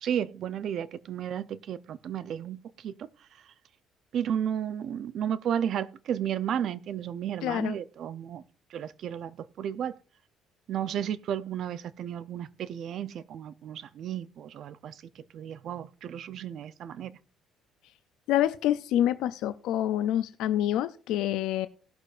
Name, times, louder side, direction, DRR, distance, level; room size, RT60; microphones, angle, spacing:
voice 1, 0.0-3.1 4.1-8.4 8.7-10.0 10.7-15.0 15.3-17.1, right 9 dB, 55° right, 0.5 m, -33 dB
voice 2, 7.4-7.8 18.3-21.7, left 12 dB, 85° left, 0.4 m, -27 dB
19.0 x 6.5 x 2.5 m
cardioid pair, 145°, 0 cm